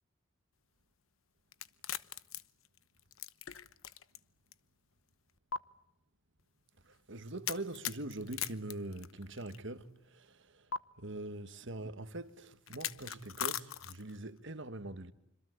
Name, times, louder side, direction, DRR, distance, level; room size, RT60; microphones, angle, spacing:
sound 1, 1.5-4.2 4.5-4.6 5.5-5.6 7.5-9.6 10.7-10.8 12.7-14.2, left 9 dB, 85° left, 1.0 m, -39 dB
voice 1, 6.9-10.7 11.0-15.1, right 2 dB, 65° right, 1.7 m, -43 dB
26.5 x 26.0 x 8.1 m
head